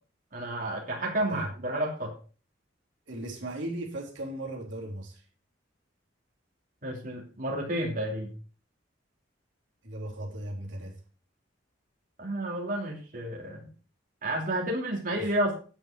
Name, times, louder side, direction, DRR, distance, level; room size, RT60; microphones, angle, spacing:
voice 1, 0.3-2.1 6.8-8.3 12.2-13.7 14.2-15.6, right 1 dB, 45° right, 3.0 m, -31 dB
voice 2, 3.1-5.2 9.8-11.0 15.1-15.3, right 1 dB, 75° right, 3.4 m, -37 dB
9.8 x 8.9 x 5.0 m
head